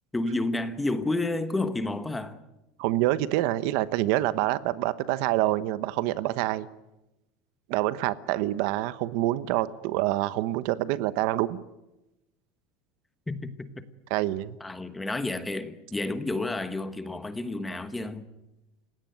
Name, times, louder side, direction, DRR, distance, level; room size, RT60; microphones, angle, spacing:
voice 1, 0.1-2.4 13.3-13.9 14.6-18.3, left 2 dB, 5° left, 1.2 m, -30 dB
voice 2, 2.8-6.7 7.7-11.6 14.1-14.6, right 15 dB, 55° right, 1.0 m, -26 dB
30.0 x 17.0 x 9.1 m
cardioid pair, 175°, 0 cm